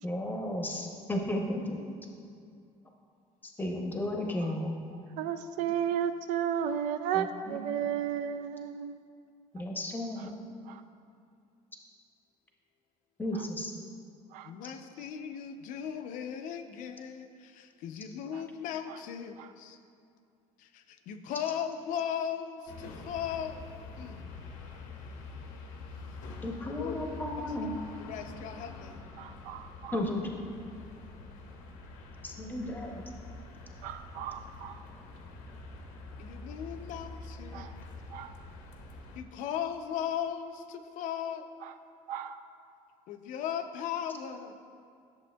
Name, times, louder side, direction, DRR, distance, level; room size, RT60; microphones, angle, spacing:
voice 1, 0.0-1.8 3.4-4.7 7.1-7.6 9.5-10.3 13.2-13.7 26.4-27.7 29.9-30.4 32.2-33.0, left 1 dB, 15° left, 1 dB, 0.7 m, -34 dB
voice 2, 5.2-9.0 10.2-10.3 10.7-10.8 13.3-13.5 14.3-14.5 18.3-18.4 18.9-19.0 19.4-19.5 29.2-30.0 33.8-34.8 37.5-37.7 38.1-38.3 41.6-41.7 42.1-42.4, right 9 dB, 75° right, 10 dB, 0.4 m, -34 dB
voice 3, 14.4-19.8 20.6-23.6 24.0-24.3 26.8-27.0 27.4-27.5 28.0-29.0 36.2-37.7 39.2-41.5 43.1-44.6, left 8 dB, 70° left, 7 dB, 0.5 m, -37 dB
sound 1, 22.7-39.2, left 3 dB, 90° left, 0.9 m, -46 dB
11.0 x 6.9 x 2.2 m, 2.4 s
cardioid pair, 150°, 14 cm